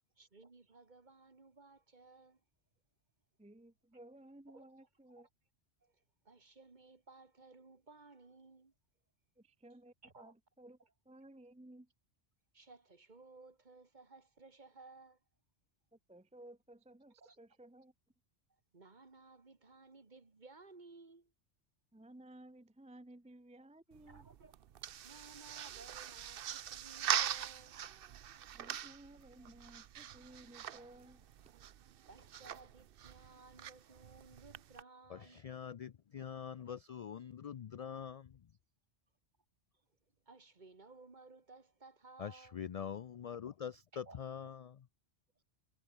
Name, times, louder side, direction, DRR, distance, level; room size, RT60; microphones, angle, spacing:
voice 1, 0.2-2.4 4.5-4.7 5.8-5.9 6.3-8.7 10.0-10.3 12.5-15.2 17.2-17.4 18.7-21.3 24.1-24.5 25.0-27.8 31.5-31.6 32.1-35.5 37.8-38.0 40.3-42.6 43.9-44.2, right 3 dB, 40° right, 1.9 m, -58 dB
voice 2, 3.4-5.3 9.4-10.8 11.1-11.9 15.9-17.9 21.9-24.3 28.5-31.3, right 1 dB, 10° right, 0.4 m, -57 dB
sound 1, 23.9-34.8, right 10 dB, 60° right, 0.8 m, -42 dB
voice 3, 35.1-38.4 42.2-44.8, left 8 dB, 65° left, 0.3 m, -44 dB
omnidirectional pair, 1.2 m